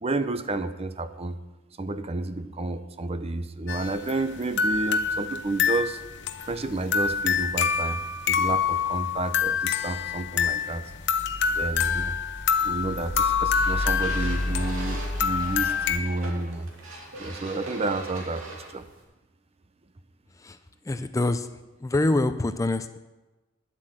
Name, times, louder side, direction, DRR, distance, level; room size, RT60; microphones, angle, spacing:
voice 1, 0.0-1.4 1.8-6.0 6.5-8.0 8.3-10.9 11.5-12.2 12.6-16.7 17.2-18.8, right 2 dB, 30° right, 11 dB, 0.7 m, -30 dB
sound 1, 3.7-16.0, left 6 dB, 60° left, 0.8 m, -26 dB
sound 2, 13.5-19.0, right 1 dB, 85° right, 3.0 m, -41 dB
voice 2, 20.8-21.5 21.8-23.0, left 2 dB, 15° left, 10 dB, 0.4 m, -25 dB
10.5 x 8.0 x 7.7 m, 1.1 s
head